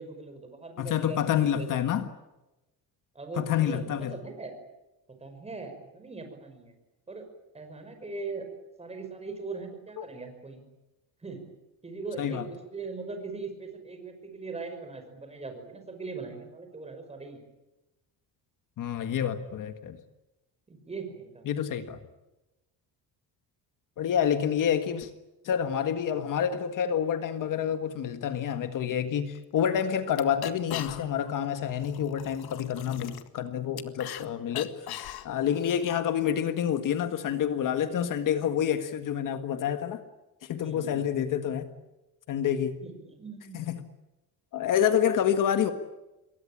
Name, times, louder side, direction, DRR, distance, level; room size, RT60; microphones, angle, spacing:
voice 1, 0.0-1.8 3.1-4.5 5.2-6.7 7.1-8.5 8.8-10.6 11.2-11.5 11.8-17.4 20.7-21.5 32.7-33.0 40.6-41.1 42.8-43.6, right 4 dB, 15° right, 6 dB, 5.6 m, -40 dB
voice 2, 0.8-2.1 3.4-4.1 10.0-10.1 12.2-12.4 18.8-20.0 21.4-22.0 24.0-25.1 25.4-40.0 40.4-41.7 42.3-42.8 43.5-43.8 44.5-45.7, left 9 dB, 55° left, 9 dB, 1.7 m, -28 dB
sound 1, 29.4-29.5 29.8-29.9 30.1-31.3 31.6-34.3 34.5-36.0, left 13 dB, 75° left, 1.8 m, -39 dB
27.5 x 22.5 x 8.7 m, 1.0 s
cardioid pair, 170°, 38 cm